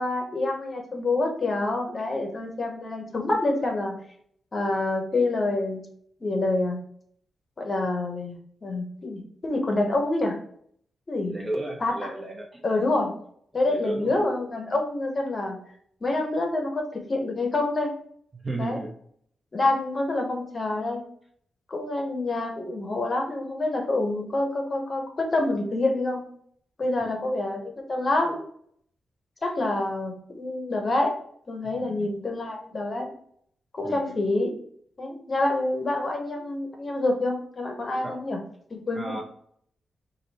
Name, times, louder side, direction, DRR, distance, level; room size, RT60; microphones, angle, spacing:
voice 1, 0.0-3.9 4.5-5.8 6.2-6.8 7.6-10.4 11.1-11.4 11.8-12.1 12.6-13.1 13.5-15.6 16.0-17.9 18.6-18.8 19.5-21.0 21.7-26.2 26.8-28.4 29.4-31.1 31.5-33.1 33.7-34.5 35.0-38.4 38.7-39.2, left 2 dB, 35° left, 2 dB, 0.9 m, -27 dB
voice 2, 11.3-12.6 13.7-14.1 18.3-18.9 27.0-27.1 31.7-32.1 33.8-34.2 38.0-38.2 38.9-39.2, right 2 dB, 20° right, 1 dB, 0.7 m, -34 dB
5.0 x 2.6 x 4.1 m, 0.65 s
wide cardioid pair, 155°, 0 cm